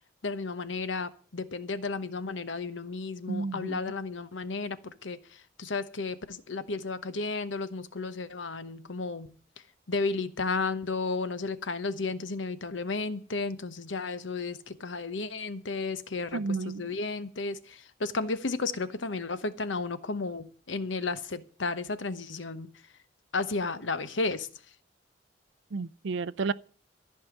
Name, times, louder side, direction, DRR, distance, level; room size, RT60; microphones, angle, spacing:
voice 1, 0.2-5.2 5.6-9.3 9.9-22.7 23.3-24.5, left 3 dB, 85° left, 1.0 m, -33 dB
voice 2, 3.3-3.8 16.3-16.9 25.7-26.5, right 4 dB, 75° right, 0.5 m, -31 dB
14.0 x 5.6 x 9.0 m
head